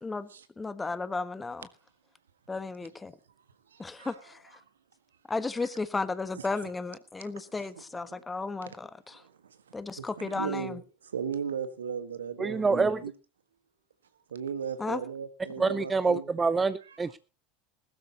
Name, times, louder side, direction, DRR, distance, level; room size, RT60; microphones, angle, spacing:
voice 1, 0.6-1.7 2.5-3.2 3.8-4.6 5.3-9.2 9.7-10.8 14.8-15.0 15.6-15.7, left 3 dB, 15° left, 1.4 m, -34 dB
voice 2, 3.7-4.1 6.6-6.7 8.1-8.2 9.1-13.1 14.3-16.3 16.9-17.0, right 6 dB, 80° right, 1.6 m, -37 dB
voice 3, 12.4-13.0 15.6-17.2, right 4 dB, 20° right, 0.7 m, -26 dB
20.5 x 13.0 x 3.0 m
figure-of-eight pair, 75°, 0 cm